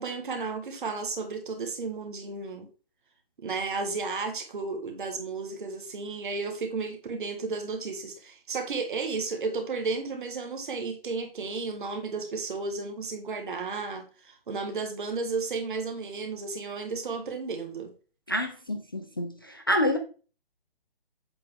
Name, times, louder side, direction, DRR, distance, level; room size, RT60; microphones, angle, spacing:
voice 1, 0.0-2.7 3.4-17.9, right 4 dB, 55° right, 6 dB, 1.8 m, -33 dB
voice 2, 18.3-20.0, left 1 dB, 25° left, 5 dB, 0.4 m, -28 dB
7.7 x 4.0 x 3.6 m, 0.36 s
hypercardioid pair, 155°, 30 cm